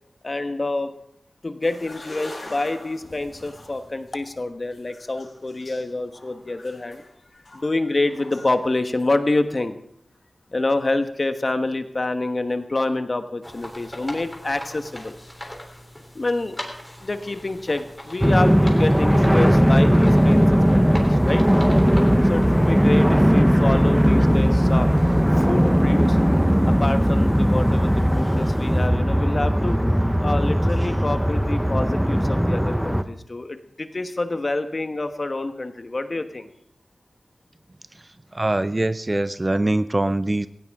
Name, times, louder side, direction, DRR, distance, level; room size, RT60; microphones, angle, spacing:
voice 1, 0.2-0.9 1.4-7.1 7.5-9.8 10.5-15.2 16.1-16.6 17.0-21.4 22.3-24.9 25.4-26.2 26.7-29.8 30.2-36.5, left 2 dB, 50° left, 8 dB, 1.3 m, -27 dB
sound 1, 1.6-8.6 9.0-9.2, left 2 dB, 65° left, 7.6 m, -43 dB
sound 2, 13.4-28.9, left 1 dB, 15° left, 3.5 m, -41 dB
sound 3, 18.2-33.0, equal, 5° right, 0.9 m, -18 dB
voice 2, 38.3-40.5, right 2 dB, 30° right, 13 dB, 0.6 m, -23 dB
17.5 x 15.5 x 3.7 m, 0.74 s
wide cardioid pair, 55°, 0 cm